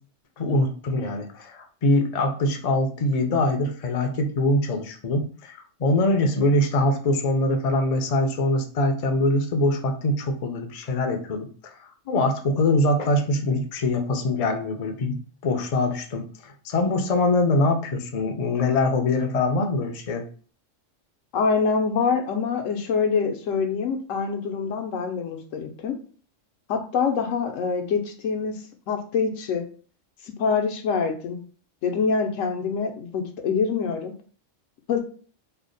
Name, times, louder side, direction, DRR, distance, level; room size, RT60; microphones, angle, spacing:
voice 1, 0.4-11.5 12.1-15.2 15.4-20.2, left 2 dB, 50° left, 4 dB, 0.5 m, -23 dB
voice 2, 21.3-26.0 26.7-28.6 28.9-29.6 30.4-31.4 31.8-34.1 34.9-35.0, left 5 dB, 85° left, 5 dB, 1.0 m, -25 dB
3.3 x 2.1 x 3.8 m, 0.41 s
omnidirectional pair, 1.3 m